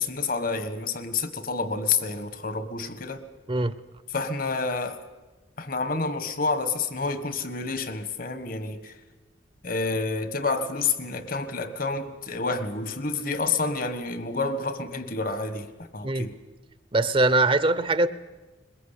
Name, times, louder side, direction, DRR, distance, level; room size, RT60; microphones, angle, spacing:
voice 1, 0.0-3.2 4.1-5.0 5.6-9.0 9.6-16.4, left 4 dB, 50° left, 1.5 m, -29 dB
voice 2, 16.9-18.1, right 2 dB, 30° right, 0.8 m, -22 dB
22.0 x 21.5 x 8.4 m
head